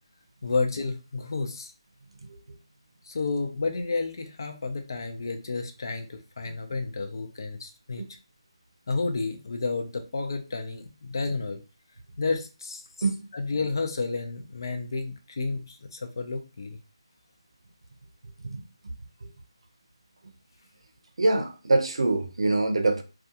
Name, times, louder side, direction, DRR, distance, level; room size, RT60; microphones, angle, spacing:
voice 1, 0.4-1.7 3.1-8.0 8.9-11.6 12.2-12.8 13.3-16.8, left 3 dB, 45° left, 0.5 m, -31 dB
voice 2, 21.2-23.0, right 2 dB, 75° right, 0.6 m, -24 dB
2.4 x 2.3 x 2.8 m
hypercardioid pair, 175°, 3 cm